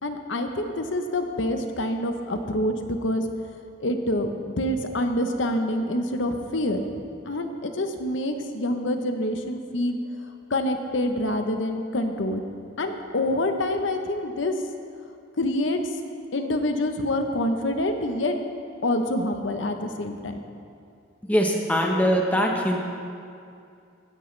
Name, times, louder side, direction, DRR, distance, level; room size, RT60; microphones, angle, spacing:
voice 1, 0.0-3.2 3.8-6.9 7.3-10.0 10.5-12.4 12.8-14.5 15.4-15.8 16.3-18.4 18.8-20.4, left 1 dB, 70° left, 6 dB, 0.9 m, -26 dB
voice 2, 21.3-22.8, equal, 10° left, 0 dB, 1.0 m, -22 dB
16.0 x 9.9 x 3.3 m, 2.5 s
head